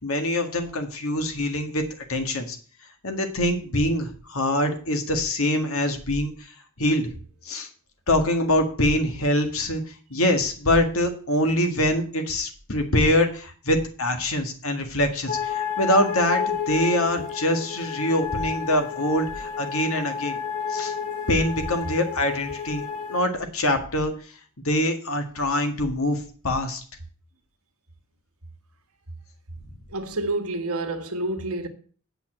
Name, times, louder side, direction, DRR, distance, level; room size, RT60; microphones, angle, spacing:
voice 1, 0.0-1.8 2.1-2.6 3.0-6.3 6.8-7.1 7.5-7.7 8.1-9.8 10.1-20.4 20.7-20.9 21.3-22.8 23.1-24.1 24.6-26.8, left 1 dB, 75° left, 1.7 m, -24 dB
sound 1, 15.3-23.2, left 6 dB, 35° left, 1.1 m, -30 dB
voice 2, 29.9-31.7, right 2 dB, 85° right, 1.5 m, -28 dB
8.2 x 5.7 x 7.6 m
head